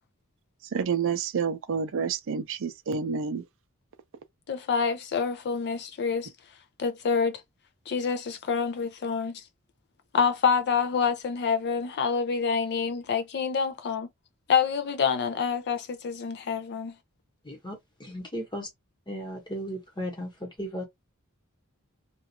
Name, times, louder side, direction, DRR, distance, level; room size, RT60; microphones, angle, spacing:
voice 1, 0.7-3.4, right 6 dB, 65° right, 0.5 m, -29 dB
voice 2, 4.5-6.3 6.8-7.4 7.9-9.4 10.1-14.1 14.5-16.9, left 6 dB, 50° left, 0.4 m, -27 dB
voice 3, 17.4-18.7 19.1-20.8, equal, 20° left, 1.1 m, -36 dB
2.5 x 2.3 x 2.8 m
head